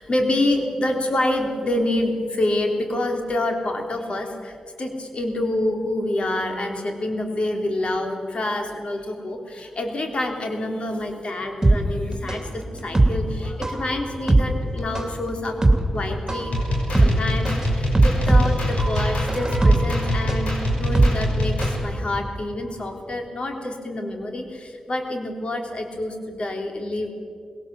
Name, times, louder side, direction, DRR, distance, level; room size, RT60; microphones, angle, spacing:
voice 1, 0.0-15.6 15.9-16.5 17.0-27.1, left 1 dB, 55° left, 3 dB, 3.5 m, -27 dB
sound 1, 11.6-21.8 22.1-22.2, right 2 dB, 25° right, 2.8 m, -20 dB
sound 2, 16.5-21.8, equal, 85° left, 5.8 m, -24 dB
20.5 x 18.0 x 7.5 m, 2.3 s
cardioid pair, 55°, 2 cm